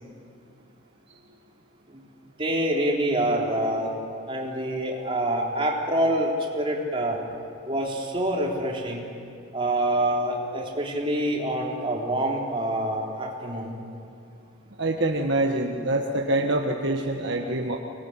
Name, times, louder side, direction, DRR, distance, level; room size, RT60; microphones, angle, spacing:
voice 1, 2.4-4.0 4.3-7.2 7.7-9.0 9.5-13.8, right 1 dB, 25° right, -2 dB, 3.7 m, -26 dB
voice 2, 14.8-17.8, right 1 dB, 55° right, 2 dB, 1.5 m, -25 dB
25.0 x 20.0 x 9.7 m, 2.5 s
head